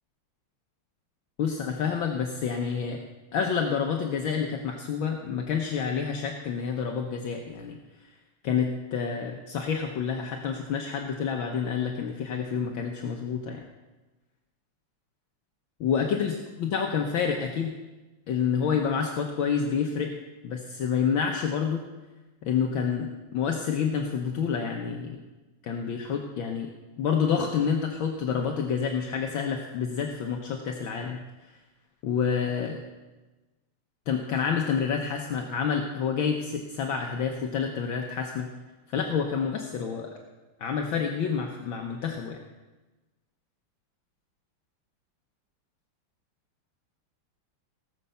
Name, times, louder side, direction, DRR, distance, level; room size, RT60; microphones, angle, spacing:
voice 1, 1.4-3.0 3.3-7.8 8.4-13.6 15.8-17.7 18.3-20.1 20.4-21.8 22.4-25.2 25.6-26.7 27.0-31.5 32.0-32.8 34.1-38.5 38.9-40.1 40.6-42.4, left 6 dB, 70° left, 2 dB, 1.7 m, -28 dB
18.0 x 6.5 x 6.9 m, 1.2 s
omnidirectional pair, 2.4 m